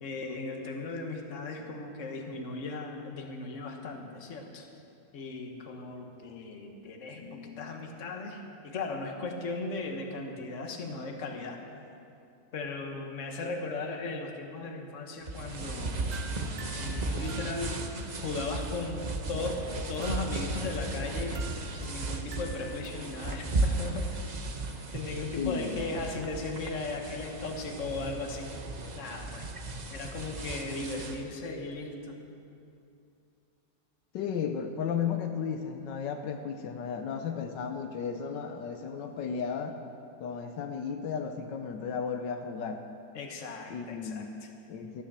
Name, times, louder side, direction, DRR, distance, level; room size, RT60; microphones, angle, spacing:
voice 1, 0.0-4.7 5.1-11.6 12.5-15.9 16.8-19.6 19.9-24.2 24.9-28.5 28.9-29.5 29.9-32.2 43.1-44.5, left 3 dB, 45° left, 3 dB, 1.5 m, -37 dB
sound 1, 15.2-31.2, right 2 dB, 40° right, 0.6 m, -35 dB
sound 2, 16.1-18.0 19.9-22.9, right 5 dB, 60° right, 1.3 m, -49 dB
voice 2, 25.4-25.9 34.1-39.8 40.2-42.8 43.7-44.3 44.7-45.0, left 6 dB, 80° left, 6 dB, 1.4 m, -34 dB
13.0 x 10.0 x 7.3 m, 2.6 s
omnidirectional pair, 1.9 m